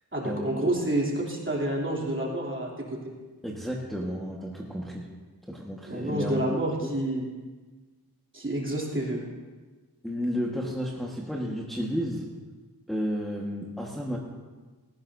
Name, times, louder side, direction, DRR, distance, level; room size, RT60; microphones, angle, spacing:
voice 1, 0.1-3.0 5.9-7.2 8.3-9.2, right 1 dB, 30° right, -3 dB, 3.1 m, -28 dB
voice 2, 3.4-5.0 5.5-6.4 6.8-7.0 10.0-12.2 12.9-14.2, equal, ahead, -3 dB, 1.5 m, -32 dB
18.0 x 15.0 x 2.7 m, 1.3 s
wide cardioid pair, 70°, 37 cm